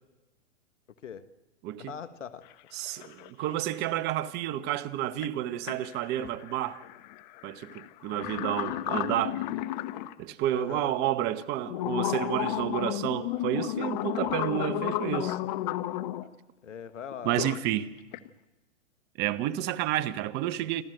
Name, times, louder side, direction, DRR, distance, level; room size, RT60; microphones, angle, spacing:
voice 1, 1.8-2.4 10.5-11.0 16.6-17.4, left 7 dB, 90° left, 1.5 m, -40 dB
sound 1, 2.4-2.5 2.8-3.6 5.2-5.3 5.6-10.1 10.7-10.8 11.4-16.3 17.1-17.6 18.0-18.3, left 15 dB, 40° left, 0.9 m, -33 dB
voice 2, 2.7-6.8 7.4-9.4 10.2-15.4 17.2-17.9 19.2-20.8, right 12 dB, 30° right, 0.9 m, -30 dB
28.0 x 12.5 x 7.8 m
hypercardioid pair, 135°, 36 cm